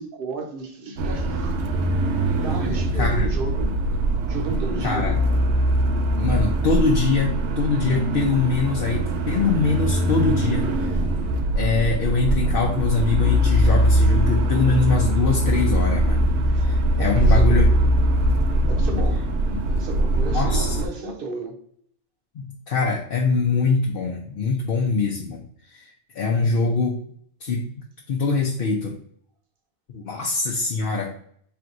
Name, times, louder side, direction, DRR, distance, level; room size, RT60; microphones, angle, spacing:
voice 1, 0.0-1.6 2.4-3.8 4.3-5.2 16.5-16.6 17.0-17.6 18.7-21.6, right 2 dB, 55° right, 0.9 m, -33 dB
sound 1, 1.0-20.9, right 1 dB, 90° right, 0.9 m, -21 dB
voice 2, 2.9-3.3 4.8-5.2 6.2-11.0 11.5-16.3 16.6-17.7 20.3-20.8 22.3-25.4 25.7-25.9 26.1-27.0 27.4-27.7 28.1-28.9 29.9-31.1, left 4 dB, 60° left, 0.8 m, -23 dB
4.5 x 3.4 x 2.5 m
omnidirectional pair, 1.1 m